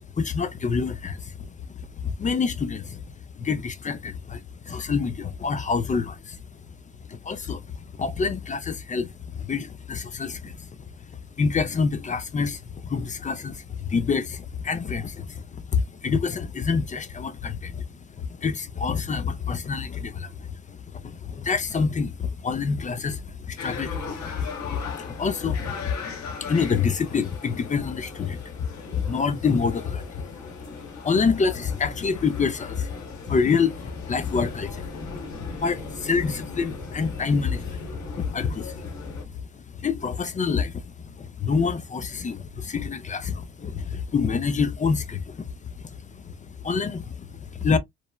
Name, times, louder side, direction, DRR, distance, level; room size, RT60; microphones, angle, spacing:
voice 1, 0.2-1.5 2.0-3.0 3.4-6.4 7.1-7.6 7.9-10.7 11.4-15.4 15.7-17.8 18.2-28.4 28.9-30.2 31.0-32.9 33.3-39.1 39.8-45.5 45.8-47.8, left 5 dB, 25° left, 0.4 m, -27 dB
sound 1, 23.6-39.2, left 4 dB, 65° left, 1.0 m, -38 dB
3.1 x 2.1 x 2.2 m
cardioid pair, 90°, 30 cm